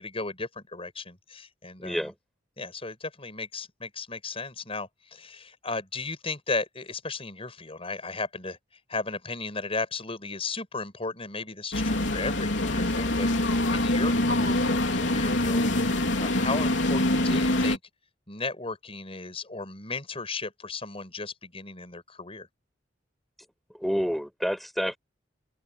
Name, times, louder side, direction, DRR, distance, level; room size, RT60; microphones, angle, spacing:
voice 1, 0.0-2.1 2.6-8.6 8.9-17.8 18.3-22.5, left 3 dB, 30° left, 6.6 m, -35 dB
voice 2, 1.8-2.1 17.2-17.4 23.7-25.0, equal, ahead, 6.2 m, -29 dB
sound 1, 11.7-17.8, left 1 dB, 70° left, 3.6 m, -25 dB
open air
head